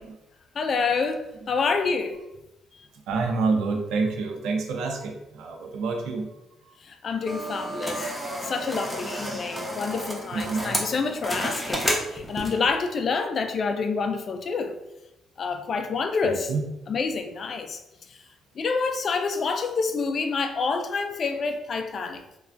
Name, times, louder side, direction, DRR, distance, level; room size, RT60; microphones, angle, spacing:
voice 1, 0.5-2.2 6.8-14.8 15.4-16.5 16.9-17.8 18.1-18.2 18.6-22.2, left 4 dB, 50° left, 7 dB, 0.3 m, -28 dB
voice 2, 3.1-6.3 6.7-6.8 10.3-10.8 16.2-16.6, right 4 dB, 85° right, 3 dB, 0.5 m, -27 dB
sound 1, 7.3-12.7, equal, 5° left, 0.6 m, -31 dB
3.2 x 2.2 x 2.5 m, 0.94 s
cardioid pair, 90°, 0 cm